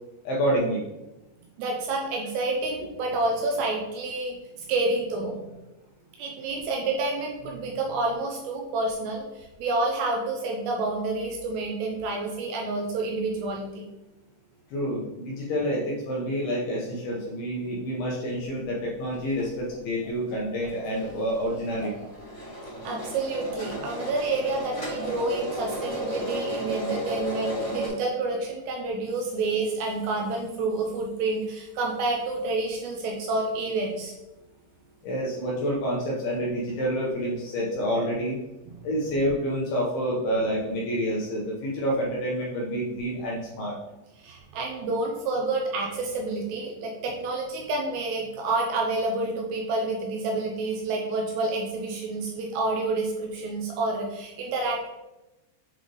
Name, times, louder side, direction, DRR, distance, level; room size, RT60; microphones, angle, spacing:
voice 1, 0.2-0.8 14.7-22.1 35.0-38.4 38.8-43.8, equal, 75° left, -3 dB, 2.4 m, -28 dB
voice 2, 1.6-4.4 4.7-5.6 6.2-13.8 22.8-34.1 44.2-54.9, right 2 dB, 80° right, 1 dB, 2.5 m, -29 dB
sound 1, 19.1-19.4 19.7-19.8 20.0-27.9, equal, 35° left, 1.2 m, -34 dB
7.8 x 3.3 x 3.9 m, 0.98 s
omnidirectional pair, 5.3 m